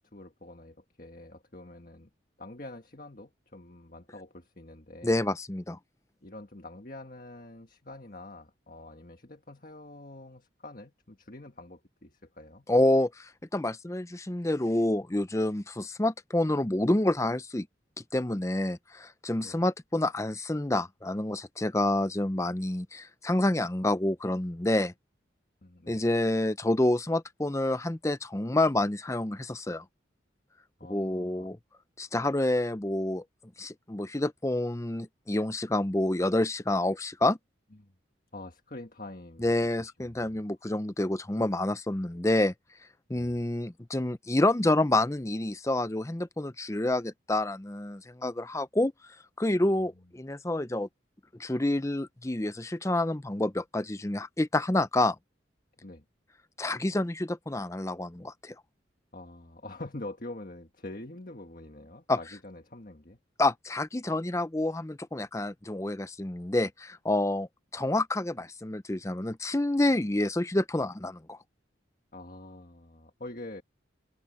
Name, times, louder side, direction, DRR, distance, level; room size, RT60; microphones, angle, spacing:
voice 1, 0.0-2.1 2.4-5.2 6.2-12.7 19.4-19.6 25.6-26.1 30.8-31.5 37.8-37.9 38.3-40.4 43.1-43.4 55.8-56.0 59.1-63.2 72.1-73.6, left 2 dB, 45° left, 1.6 m, -45 dB
voice 2, 5.0-5.8 12.7-17.7 18.1-24.9 25.9-29.8 30.9-31.6 32.0-33.2 33.6-37.4 39.4-42.5 43.1-48.9 49.4-50.9 51.4-55.2 56.6-58.5 62.1-62.2 63.4-67.5 67.7-71.4, left 1 dB, 15° left, 0.6 m, -28 dB
head